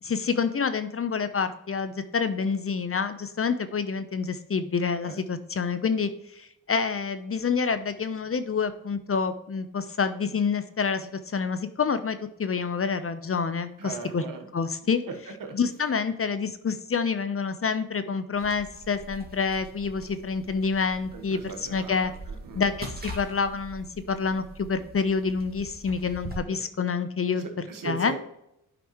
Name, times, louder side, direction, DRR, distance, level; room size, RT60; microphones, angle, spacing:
voice 1, 0.0-14.2 14.5-15.0 15.5-22.1 22.5-28.1, left 5 dB, 40° left, 11 dB, 0.8 m, -28 dB
voice 2, 13.8-14.5 15.1-15.6 21.1-22.6 26.5-26.6 27.4-28.2, right 5 dB, 65° right, 5 dB, 1.4 m, -38 dB
sound 1, 18.3-26.4, right 1 dB, 25° right, 2.0 m, -43 dB
8.6 x 5.1 x 3.1 m, 0.80 s
supercardioid pair, 45°, 36 cm